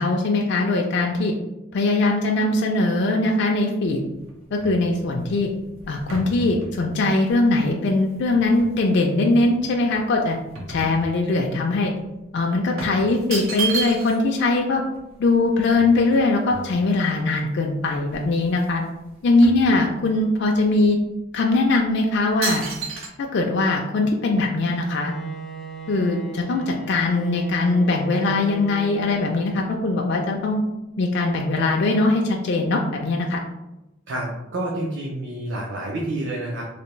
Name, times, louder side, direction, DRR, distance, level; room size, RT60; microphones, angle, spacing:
voice 1, 0.0-1.3 1.7-4.0 4.5-5.5 5.9-10.4 10.7-11.9 12.3-14.8 15.2-18.8 19.2-21.0 21.3-22.6 23.2-25.1 25.9-30.6 31.0-33.4, left 2 dB, 55° left, 1 dB, 0.3 m, -21 dB
sound 1, 3.8-8.9 9.4-11.6 11.9-12.0 12.8-14.4 14.7-14.8 14.9-17.1 17.6-17.7 18.0-18.8 19.0-20.3 20.9-21.0 21.6-21.9 22.4-23.1, right 4 dB, 85° right, 0.8 m, -33 dB
Bowed string instrument, 24.6-30.0, right 1 dB, ahead, 0.5 m, -37 dB
voice 2, 34.1-36.6, right 1 dB, 60° right, -1 dB, 0.5 m, -28 dB
3.3 x 2.7 x 3.0 m, 0.98 s
head